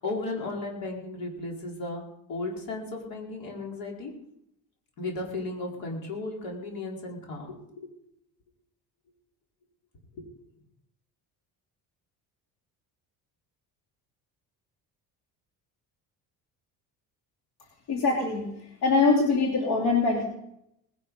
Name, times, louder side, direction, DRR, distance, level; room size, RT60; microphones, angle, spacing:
voice 1, 0.0-2.0 2.3-4.1 5.0-7.9 10.1-10.3, left 2 dB, 65° left, 0 dB, 4.7 m, -35 dB
voice 2, 17.9-18.5 18.8-20.2, left 3 dB, 85° left, -1 dB, 3.2 m, -23 dB
19.5 x 11.0 x 5.5 m, 0.79 s
cardioid pair, 160°, 37 cm